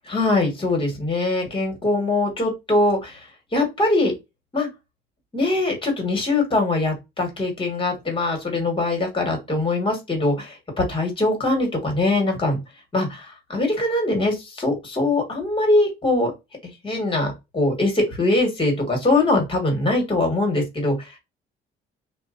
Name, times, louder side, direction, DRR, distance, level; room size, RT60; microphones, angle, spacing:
voice 1, 0.1-4.1 4.5-4.7 5.3-12.6 12.9-16.3 16.8-21.2, left 2 dB, 25° left, 3 dB, 1.4 m, -22 dB
2.4 x 2.1 x 2.4 m, 0.22 s
cardioid pair, 90°, 20 cm